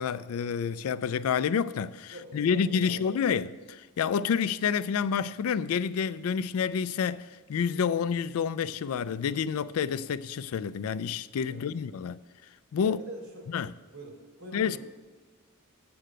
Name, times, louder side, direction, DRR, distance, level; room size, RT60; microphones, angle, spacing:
voice 1, 0.0-12.2 12.7-13.0 13.5-13.7 14.5-14.8, left 7 dB, 75° left, 0.3 m, -29 dB
voice 2, 2.1-3.2 11.5-11.7 12.8-13.5 13.9-14.8, right 1 dB, 70° right, 2.9 m, -44 dB
7.8 x 6.6 x 7.5 m
head